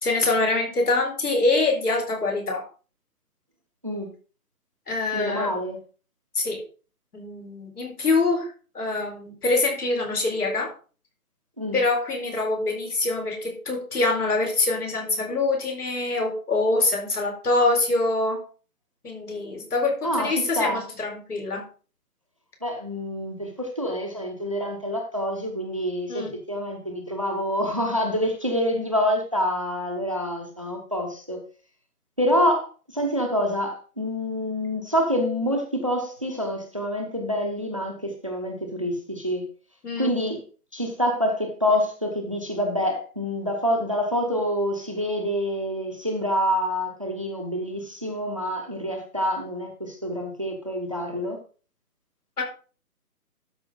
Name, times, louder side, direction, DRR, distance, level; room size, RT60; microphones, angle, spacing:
voice 1, 0.0-2.6 4.9-5.5 6.3-6.6 7.1-10.7 11.7-18.4 19.0-21.7 26.1-26.3 39.8-40.1 52.4-52.5, left 3 dB, 75° left, 4.2 m, -25 dB
voice 2, 5.1-5.8 11.6-11.8 20.0-20.8 22.6-31.4 32.2-39.5 40.0-40.4 40.7-51.4, equal, 20° right, 0.7 m, -27 dB
12.5 x 5.0 x 3.8 m
hypercardioid pair, 170°, 46 cm